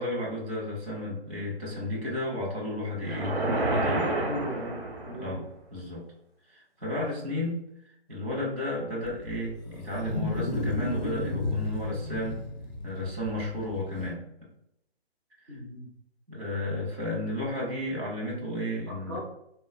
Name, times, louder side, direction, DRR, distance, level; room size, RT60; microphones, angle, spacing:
voice 1, 0.0-3.4 3.7-4.1 5.1-6.0 6.5-7.6 8.1-12.4 12.8-14.2 16.3-19.2, left 1 dB, 85° right, -3 dB, 1.5 m, -33 dB
sound 1, 3.0-5.4, right 2 dB, 70° right, 0.8 m, -29 dB
voice 2, 4.1-5.4 15.5-15.9 19.1-19.2, left 1 dB, 20° right, -4 dB, 0.4 m, -37 dB
Wild animals, 9.0-14.1, left 2 dB, 45° left, 0.4 m, -33 dB
3.0 x 2.2 x 2.3 m, 0.77 s
figure-of-eight pair, 145°, 32 cm